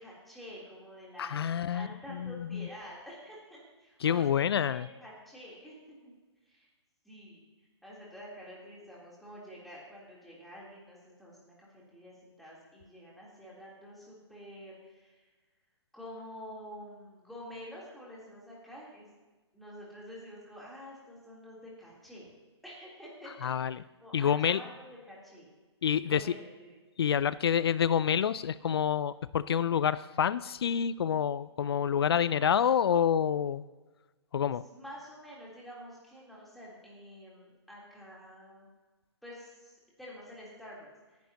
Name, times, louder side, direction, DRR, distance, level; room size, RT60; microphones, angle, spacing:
voice 1, 0.0-5.8 6.0-6.1 6.4-6.7 7.0-7.4 7.8-15.2 15.9-19.1 19.5-22.3 22.6-23.5 24.0-25.5 26.1-26.7 34.7-38.7 39.2-41.2, equal, ahead, -6 dB, 3.5 m, -48 dB
voice 2, 1.2-2.7 4.0-4.9 23.4-23.8 24.1-24.6 25.8-26.3 27.0-33.6 34.3-34.6, left 8 dB, 60° left, 18 dB, 0.4 m, -28 dB
19.0 x 10.5 x 2.9 m, 1.2 s
figure-of-eight pair, 130°, 15 cm